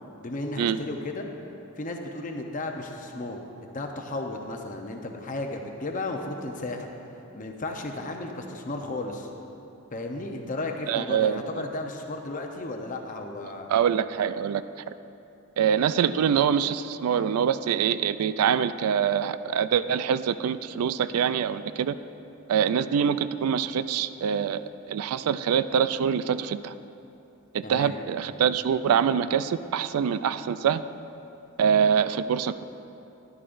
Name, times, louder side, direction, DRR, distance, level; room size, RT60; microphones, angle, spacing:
voice 1, 0.2-1.3 1.8-6.9 7.3-9.3 9.9-13.7 27.6-28.0, left 2 dB, 35° left, 3 dB, 0.8 m, -34 dB
voice 2, 10.9-11.4 13.7-14.6 15.6-21.9 22.5-26.7 27.5-30.8 31.6-32.6, right 8 dB, 80° right, 13 dB, 0.3 m, -24 dB
13.5 x 11.0 x 2.6 m, 2.8 s
head